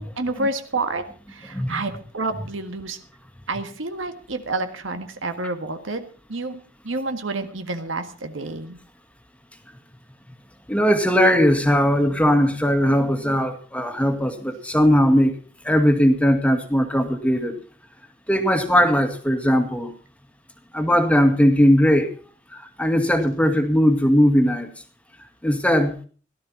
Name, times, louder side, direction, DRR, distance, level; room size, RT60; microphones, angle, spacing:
voice 1, 0.0-3.0 3.5-8.8, right 2 dB, 70° right, 7 dB, 1.7 m, -29 dB
voice 2, 10.7-15.4 15.6-17.6 18.3-19.9 20.7-22.1 22.5-24.7 25.4-25.9, equal, 5° left, 7 dB, 2.0 m, -19 dB
17.5 x 12.5 x 4.2 m, 0.40 s
head